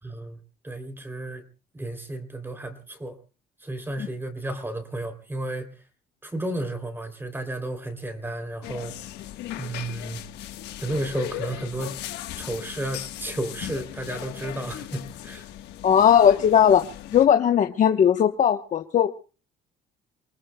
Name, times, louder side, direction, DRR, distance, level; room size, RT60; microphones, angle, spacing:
voice 1, 0.0-1.4 1.7-3.2 3.6-5.8 6.2-8.9 9.6-10.2 10.8-12.0 12.4-15.5, right 1 dB, 15° right, 8 dB, 3.2 m, -33 dB
sound 1, 8.6-17.3, left 13 dB, 85° left, 1.4 m, -37 dB
voice 2, 15.8-16.8 17.1-19.1, left 9 dB, 50° left, 5 dB, 1.0 m, -18 dB
29.0 x 19.5 x 2.3 m, 0.36 s
cardioid pair, 110°, 17 cm